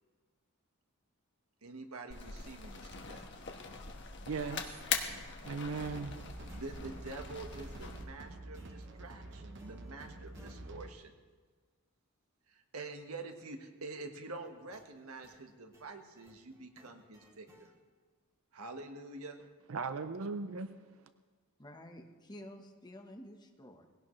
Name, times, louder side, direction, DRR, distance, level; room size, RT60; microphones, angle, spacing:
voice 1, 1.6-3.3 6.6-11.1 12.5-17.7 18.5-19.4, right 3 dB, 85° right, 5 dB, 1.5 m, -47 dB
sound 1, 2.1-8.0, left 6 dB, 55° left, 1.4 m, -41 dB
sound 2, 4.0-10.6 14.3-17.7, right 1 dB, 15° right, 2.3 m, -62 dB
voice 2, 4.3-4.6 5.5-6.2 19.7-20.7, right 4 dB, 70° right, 10 dB, 0.6 m, -37 dB
sound 3, 5.8-10.9, right 2 dB, 55° right, 1.0 m, -48 dB
voice 3, 21.6-23.9, equal, 20° left, 3 dB, 1.2 m, -51 dB
20.0 x 17.0 x 3.2 m, 1.4 s
head